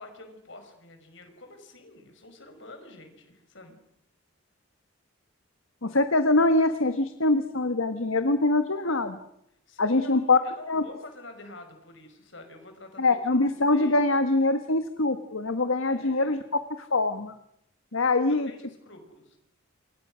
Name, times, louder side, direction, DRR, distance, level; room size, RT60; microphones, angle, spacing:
voice 1, 0.0-3.8 9.7-14.0 15.8-16.4 18.3-19.4, left 2 dB, 65° left, 6 dB, 5.6 m, -47 dB
voice 2, 5.8-9.2 9.8-10.4 10.7-10.8 13.0-17.4 17.9-18.5, left 2 dB, 80° left, 9 dB, 1.5 m, -24 dB
28.5 x 24.5 x 6.3 m, 0.78 s
head